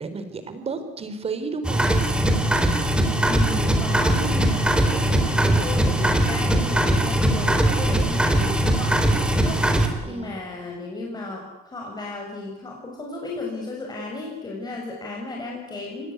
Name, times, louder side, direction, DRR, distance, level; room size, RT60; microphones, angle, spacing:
voice 1, 0.0-1.9 10.0-10.6, right 4 dB, 35° right, 10 dB, 4.0 m, -32 dB
sound 1, 1.6-9.9, right 1 dB, 5° right, 3.8 m, -20 dB
voice 2, 3.3-16.1, left 2 dB, 25° left, -1 dB, 6.3 m, -34 dB
25.0 x 19.0 x 9.7 m, 1.1 s
cardioid pair, 110°, 17 cm